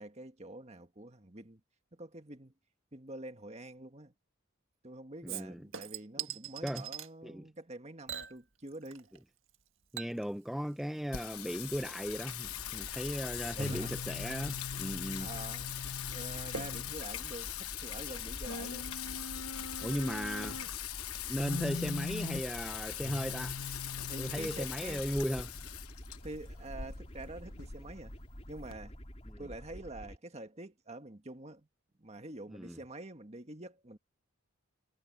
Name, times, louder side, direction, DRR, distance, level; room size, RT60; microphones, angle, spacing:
voice 1, 0.0-1.6 1.9-2.5 2.9-4.1 4.8-9.1 13.6-13.9 15.2-19.0 24.1-25.0 26.2-28.1 28.5-29.0 29.4-31.7 32.0-34.0, right 2 dB, 30° right, 1.7 m, -46 dB
voice 2, 5.2-5.6 6.6-6.9 7.2-7.4 9.9-15.3 19.8-20.6 21.3-23.6 24.2-25.5 29.3-29.4 32.5-32.8, equal, ahead, 0.5 m, -36 dB
Chink clink / Liquid, 5.3-7.1 8.1-9.2 9.5-18.5 18.9-19.0, right 8 dB, 65° right, 1.8 m, -47 dB
Singing, 11.1-28.7, left 8 dB, 85° left, 1.1 m, -40 dB
sound 1, 12.4-30.2, equal, 30° left, 3.5 m, -49 dB
head